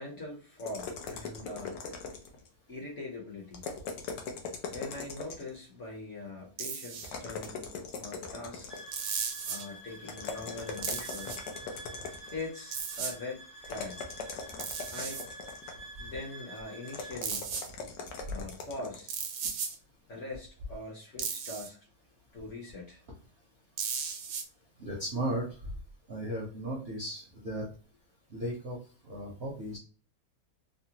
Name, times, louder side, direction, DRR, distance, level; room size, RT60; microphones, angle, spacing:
voice 1, 0.0-1.8 2.7-3.6 4.7-8.7 9.5-11.3 12.3-14.0 14.9-15.2 16.0-17.5 18.3-19.2 20.1-21.8 22.3-23.0, left 2 dB, 50° left, -3 dB, 1.0 m, -42 dB
sound 1, 0.6-2.5 3.5-5.6 7.0-9.0 10.1-12.4 13.6-15.9 16.9-19.1, left 5 dB, 80° left, 1.3 m, -40 dB
sound 2, 6.6-7.1 8.9-9.6 10.8-11.4 12.7-13.1 14.6-15.2 17.2-17.7 19.1-19.8 21.2-21.7 23.8-24.4, right 6 dB, 85° right, 1.2 m, -35 dB
sound 3, 8.7-17.2, right 1 dB, 35° left, 0.6 m, -48 dB
voice 2, 24.8-25.5 26.1-27.7 28.3-28.8 29.0-29.8, right 1 dB, 60° right, -2 dB, 0.7 m, -35 dB
3.6 x 2.0 x 2.8 m, 0.37 s
omnidirectional pair, 1.9 m